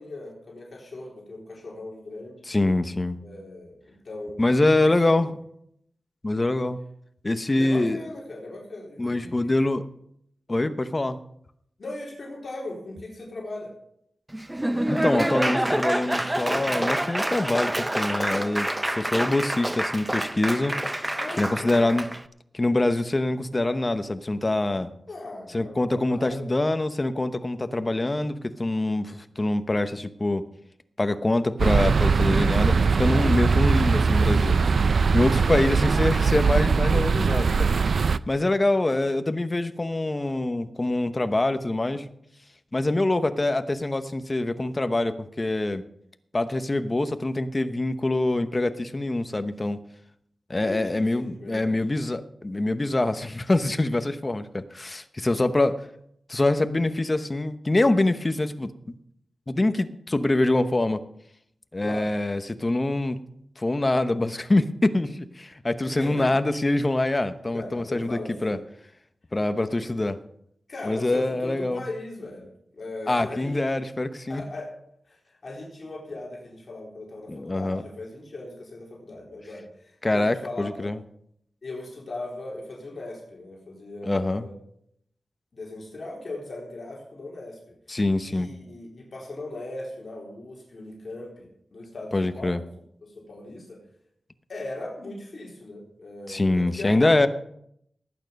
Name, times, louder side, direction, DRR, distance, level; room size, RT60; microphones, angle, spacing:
voice 1, 0.0-2.5 3.2-4.4 7.6-9.5 11.8-13.7 21.1-22.1 25.1-26.7 35.5-35.6 50.5-51.8 61.8-62.1 65.8-66.3 67.5-68.6 69.7-69.8 70.7-73.8 74.3-74.7 75.1-80.9 81.6-84.5 85.5-87.6 88.2-92.6 93.0-93.8 94.5-97.3, left 2 dB, 50° left, -2 dB, 4.0 m, -39 dB
voice 2, 2.5-3.2 4.4-5.3 6.2-6.8 7.2-8.0 9.0-9.9 10.5-11.2 14.9-20.7 21.4-22.0 22.5-24.9 25.5-30.4 31.0-34.6 34.8-37.7 38.3-42.0 42.7-45.8 46.3-49.8 50.5-55.9 56.3-58.7 59.5-61.0 61.7-63.2 63.6-68.6 69.3-70.2 70.8-71.8 73.1-74.4 77.3-77.8 80.0-81.0 84.0-84.4 87.9-88.5 92.1-92.6 96.3-97.3, left 2 dB, 25° left, 10 dB, 0.9 m, -25 dB
Laughter / Applause, 14.3-22.2, right 1 dB, 15° right, 0.7 m, -27 dB
sound 1, 31.6-38.2, right 5 dB, 70° right, 0.4 m, -21 dB
18.0 x 9.2 x 5.3 m, 0.73 s
wide cardioid pair, 125°, 0 cm